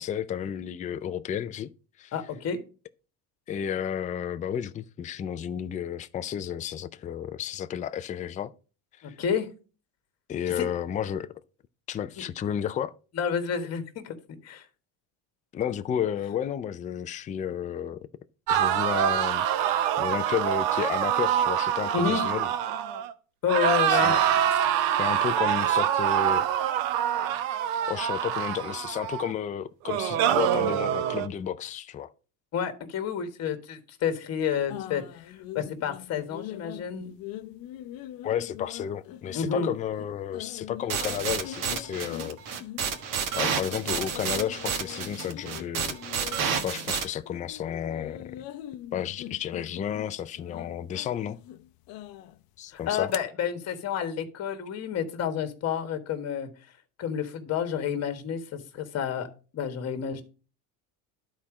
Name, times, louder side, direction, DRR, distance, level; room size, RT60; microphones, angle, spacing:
voice 1, 0.0-1.7 2.0-2.1 3.5-8.5 9.0-9.2 10.3-11.3 11.9-12.9 15.5-18.1 18.5-19.5 20.0-22.5 23.9-24.2 24.6-24.7 25.0-26.8 27.9-32.1 38.2-42.4 43.3-46.0 46.6-48.4 48.9-51.4 52.6-53.1, left 9 dB, 20° left, 0.3 m, -32 dB
voice 2, 2.1-2.6 9.0-9.5 10.5-10.6 13.1-14.1 14.4-14.6 21.9-22.2 23.4-24.1 32.5-37.1 39.3-39.7 52.7-56.5 57.0-59.3 59.5-60.2, left 7 dB, 40° left, 1.5 m, -30 dB
sound 1, 18.5-23.1 23.5-29.3 29.9-31.3, right 10 dB, 80° right, 0.9 m, -25 dB
sound 2, 34.7-46.9 47.2-53.2, left 13 dB, 60° left, 0.7 m, -43 dB
sound 3, 40.9-47.0, right 7 dB, 50° right, 1.5 m, -30 dB
11.5 x 4.3 x 4.9 m
cardioid pair, 130°, 40 cm